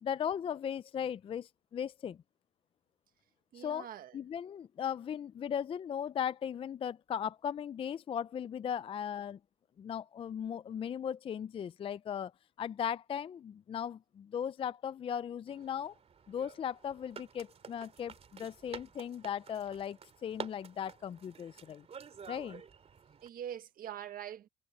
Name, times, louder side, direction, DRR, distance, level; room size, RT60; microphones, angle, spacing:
voice 1, 0.0-2.2 3.5-3.9 4.1-9.4 9.8-12.3 12.6-16.0 16.3-21.9 22.3-22.6, left 8 dB, 35° left, 0.4 m, -37 dB
voice 2, 3.5-4.1 23.2-24.5, right 10 dB, 60° right, 1.4 m, -43 dB
sound 1, 15.5-23.3, right 6 dB, 40° right, 2.7 m, -50 dB
cardioid pair, 110°, 17 cm